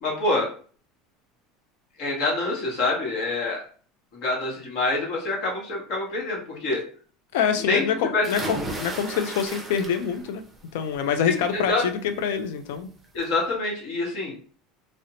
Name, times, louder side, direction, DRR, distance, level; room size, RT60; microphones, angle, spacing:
voice 1, 0.0-0.5 2.0-3.6 4.1-6.8 7.6-7.8 8.1-8.2 11.3-11.8 13.1-14.3, left 2 dB, 60° left, -1 dB, 1.0 m, -26 dB
voice 2, 7.3-10.4 10.7-12.9, left 7 dB, 80° left, 7 dB, 0.3 m, -26 dB
sound 1, 8.2-10.3 10.7-11.2 12.5-12.6 13.0-13.1, right 1 dB, 15° right, 0.5 m, -34 dB
2.5 x 2.0 x 2.8 m, 0.42 s
supercardioid pair, 140°, 0 cm